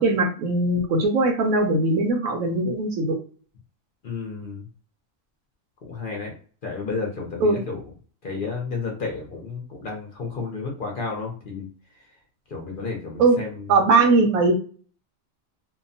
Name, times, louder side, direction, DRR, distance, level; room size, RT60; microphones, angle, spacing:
voice 1, 0.0-3.2 7.4-7.6 13.2-13.4 13.7-14.5, right 3 dB, 85° right, 4 dB, 1.1 m, -20 dB
voice 2, 4.0-4.7 5.8-6.3 6.6-7.8 8.2-11.7 11.9-12.1 12.5-13.8, left 4 dB, 50° left, 0 dB, 0.7 m, -32 dB
2.8 x 2.1 x 2.6 m, 0.41 s
omnidirectional pair, 1.4 m